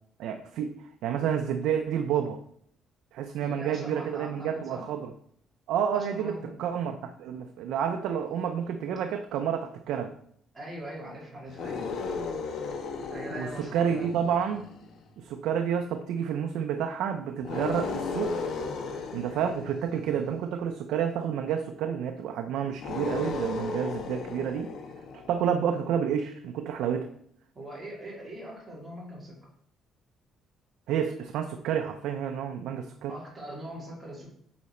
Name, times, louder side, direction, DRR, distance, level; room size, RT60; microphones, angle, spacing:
voice 1, 0.2-0.7 1.0-2.4 3.1-5.1 5.7-10.1 13.4-13.5 13.7-14.7 15.2-18.3 19.1-24.7 25.3-27.1 30.9-33.1, right 8 dB, 85° right, 5 dB, 0.5 m, -29 dB
voice 2, 3.4-4.8 5.9-6.5 10.5-11.9 13.1-14.2 27.5-29.4 33.1-34.3, right 1 dB, 10° right, -5 dB, 2.3 m, -41 dB
sound 1, 11.5-15.0 17.4-20.5 22.7-25.5, left 4 dB, 60° left, 1.0 m, -35 dB
8.5 x 4.3 x 4.3 m, 0.65 s
cardioid pair, 180°, 0 cm